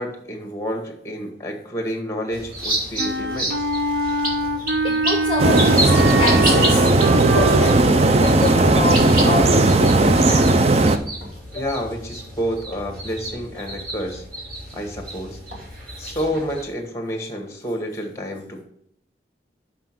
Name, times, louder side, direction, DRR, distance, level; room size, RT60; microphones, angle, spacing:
voice 1, 0.0-3.7 11.5-14.2 14.7-15.4 16.0-18.6, equal, 15° left, 2 dB, 1.5 m, -29 dB
sound 1, 2.3-16.6, right 1 dB, 55° right, 2.6 m, -30 dB
Wind instrument woodwind instrument, 3.0-7.9, right 2 dB, 75° right, 0.7 m, -24 dB
voice 2, 4.8-10.5 11.5-11.7, left 3 dB, 30° left, 0 dB, 0.8 m, -27 dB
sound 2, 5.4-11.0, right 2 dB, 35° right, 0.5 m, -16 dB
5.9 x 5.7 x 6.1 m, 0.73 s
head